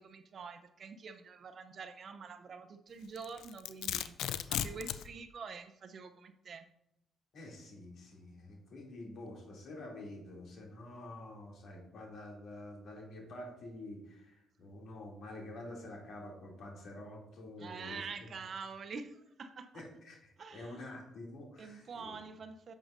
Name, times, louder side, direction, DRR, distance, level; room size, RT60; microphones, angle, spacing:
voice 1, 0.0-4.2 4.5-6.7 17.6-19.8 20.4-20.9 21.6-22.8, right 5 dB, 50° right, 9 dB, 0.7 m, -46 dB
Domestic sounds home sounds, 3.2-5.1, left 10 dB, 85° left, 0.3 m, -36 dB
voice 2, 7.3-18.1 19.7-22.2, left 1 dB, 65° left, -1 dB, 2.7 m, -48 dB
10.5 x 7.3 x 2.6 m, 0.83 s
cardioid pair, 90°, 0 cm